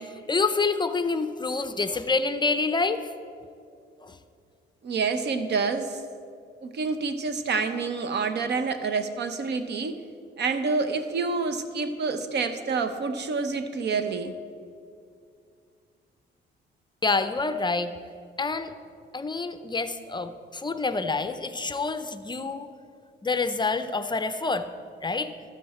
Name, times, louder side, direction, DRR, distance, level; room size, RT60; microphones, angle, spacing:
voice 1, 0.0-3.1 4.0-4.2 17.0-17.9 18.4-18.7 19.1-22.7 23.2-24.7 25.0-25.3, left 4 dB, 25° left, 10 dB, 0.5 m, -27 dB
voice 2, 4.8-6.0 6.6-10.0 10.4-14.3, right 4 dB, 60° right, 9 dB, 0.9 m, -28 dB
12.5 x 9.7 x 4.3 m, 2.3 s
cardioid pair, 90°, 20 cm